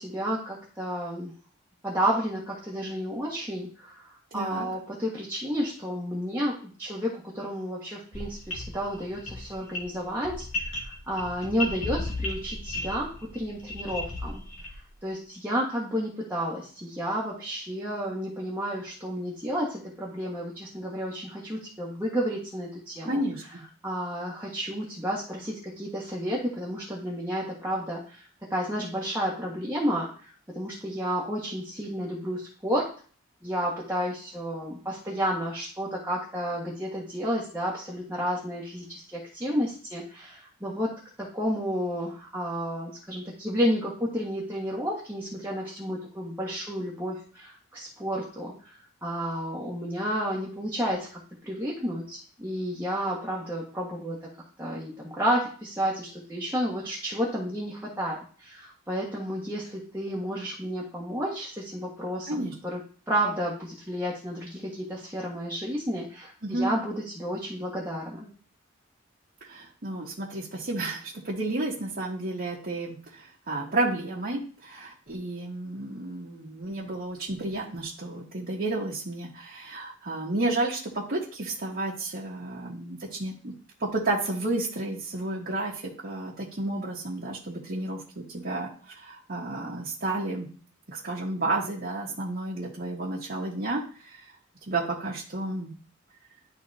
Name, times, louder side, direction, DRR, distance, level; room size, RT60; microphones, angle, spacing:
voice 1, 0.0-1.3 1.8-14.4 15.0-23.2 23.8-28.2 28.5-32.9 33.4-48.7 49.0-51.1 51.4-54.2 54.6-62.8 63.1-68.3, equal, 10° right, -6 dB, 1.5 m, -31 dB
voice 2, 4.3-4.7 23.1-23.6 62.3-62.5 66.4-66.7 69.4-83.5 83.8-90.5 90.9-93.8 94.1-94.2 94.7-95.7, right 2 dB, 50° right, -6 dB, 1.6 m, -31 dB
sound 1, 8.1-14.9, left 1 dB, 80° left, 2.2 m, -35 dB
12.0 x 4.1 x 2.8 m, 0.42 s
head